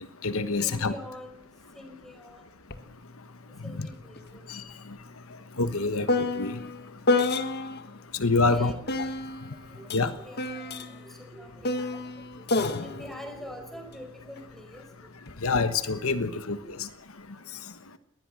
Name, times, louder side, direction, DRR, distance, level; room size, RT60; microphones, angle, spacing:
voice 1, 0.0-0.9 3.6-3.9 4.5-4.6 5.6-6.6 8.2-8.7 9.9-10.1 15.4-16.9, left 3 dB, 75° left, 11 dB, 1.3 m, -26 dB
voice 2, 0.6-1.4 1.7-2.5 3.6-4.4 8.4-9.3 9.7-12.4 12.8-14.8 16.3-16.7, equal, ahead, 5 dB, 5.3 m, -45 dB
sound 1, 2.7-2.9 3.2-7.9 8.9-14.4 15.3-15.7, left 2 dB, 50° left, 1.6 m, -31 dB
21.0 x 19.5 x 6.3 m, 0.79 s
head